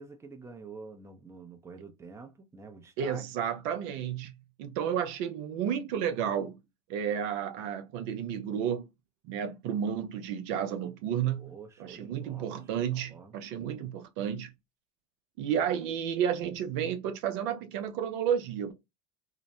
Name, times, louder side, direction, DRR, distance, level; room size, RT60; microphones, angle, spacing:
voice 1, 0.0-3.2 11.4-13.3, right 4 dB, 15° right, 0.6 m, -48 dB
voice 2, 3.0-6.6 6.9-8.8 9.3-11.5 11.8-14.5 15.4-18.7, right 8 dB, 60° right, 0.5 m, -32 dB
2.9 x 2.0 x 2.6 m
hypercardioid pair, 80°, 18 cm